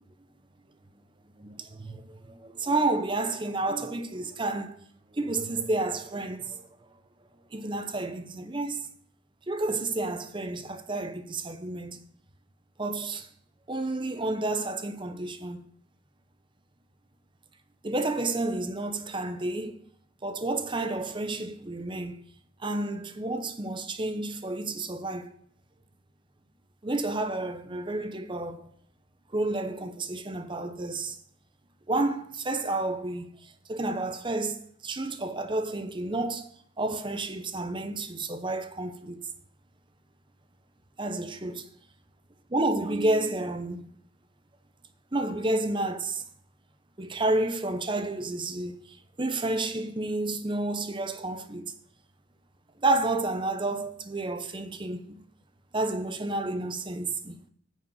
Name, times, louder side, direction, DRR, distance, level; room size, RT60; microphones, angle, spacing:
voice 1, 1.4-4.7 5.1-6.6 7.5-8.8 9.5-12.1 12.8-13.3 13.7-15.7 17.8-19.7 20.2-22.2 22.6-25.3 26.8-28.7 29.3-31.2 31.9-33.3 33.7-34.6 34.8-36.5 36.8-39.2 41.0-41.7 42.5-43.9 45.1-46.2 47.0-48.7 49.2-51.7 52.8-55.2 55.7-57.4, right 2 dB, 25° right, 0.8 m, -30 dB
9.5 x 5.2 x 7.1 m
head